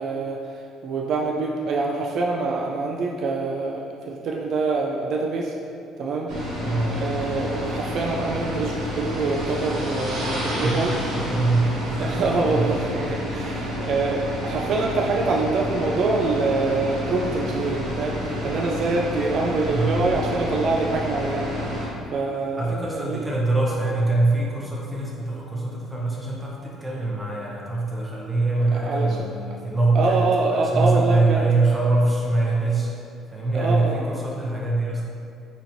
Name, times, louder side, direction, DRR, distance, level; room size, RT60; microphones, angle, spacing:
voice 1, 0.0-5.5 6.0-6.3 7.0-10.9 12.0-21.5 21.8-23.2 28.8-29.3 29.9-31.4 33.5-34.0, right 3 dB, 60° right, -1 dB, 0.3 m, -25 dB
sound 1, 6.3-21.9, equal, 75° right, 0.9 m, -29 dB
voice 2, 6.6-7.1 10.6-12.2 12.5-12.8 19.7-20.0 22.6-32.9 33.3-35.1, right 2 dB, 10° right, -4 dB, 0.7 m, -23 dB
4.1 x 2.9 x 2.6 m, 2.5 s
cardioid pair, 100°, 0 cm